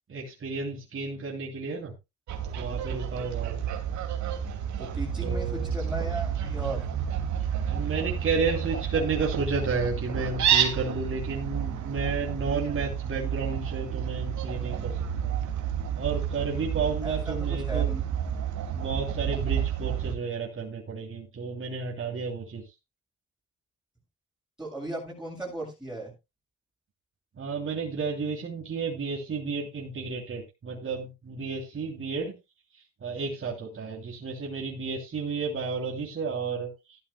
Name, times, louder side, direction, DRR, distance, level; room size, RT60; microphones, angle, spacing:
voice 1, 0.1-1.9 2.6-3.6 5.2-5.7 7.7-15.3 15.9-17.9 18.7-22.6 27.4-32.3 32.7-37.0, right 4 dB, 45° right, -1 dB, 3.0 m, -32 dB
Fowl, 2.3-20.2, right 9 dB, 75° right, 2.4 m, -30 dB
voice 2, 4.8-6.9 17.0-18.0 24.6-26.1, right 2 dB, 5° right, -6 dB, 7.0 m, -36 dB
14.5 x 12.0 x 2.3 m, 0.24 s
cardioid pair, 90°, 30 cm